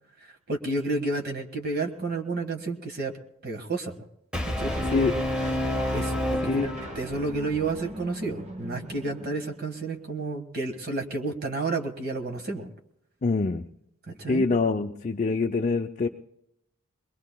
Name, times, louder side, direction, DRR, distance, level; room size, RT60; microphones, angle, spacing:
voice 1, 0.5-3.1 3.4-3.9 4.4-5.1 5.9-12.7 14.2-14.4, right 3 dB, 45° right, 4 dB, 1.7 m, -31 dB
Brass instrument, 4.3-7.4, left 1 dB, 5° right, 1.3 m, -29 dB
sound 1, 4.7-9.8, right 1 dB, 30° right, 1.0 m, -41 dB
voice 2, 6.4-6.8 13.2-13.6 14.3-16.1, left 4 dB, 35° left, 4 dB, 0.5 m, -25 dB
23.0 x 21.0 x 2.3 m, 0.80 s
head